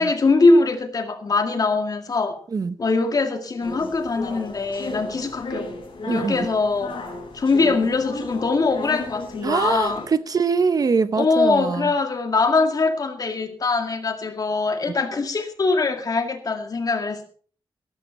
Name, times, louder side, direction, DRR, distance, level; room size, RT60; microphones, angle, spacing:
voice 1, 0.0-2.4 2.8-5.7 6.1-7.0 7.3-10.1 11.2-17.2, left 3 dB, 45° left, 6 dB, 2.1 m, -22 dB
sound 1, 3.6-10.1, left 2 dB, 65° left, 5.9 m, -35 dB
voice 2, 9.4-11.9, right 5 dB, 40° right, 13 dB, 0.7 m, -23 dB
16.5 x 13.0 x 4.1 m, 0.43 s
wide cardioid pair, 175°, 9 cm